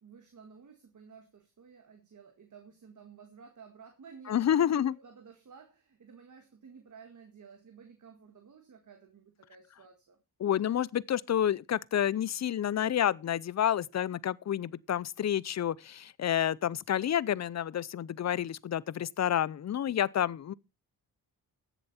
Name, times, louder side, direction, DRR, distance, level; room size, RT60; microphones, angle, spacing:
voice 1, 0.0-10.2, right 6 dB, 50° right, 2.0 m, -54 dB
voice 2, 4.3-5.0 10.4-20.5, left 10 dB, 45° left, 0.5 m, -29 dB
15.0 x 7.1 x 4.3 m
cardioid pair, 70°, 38 cm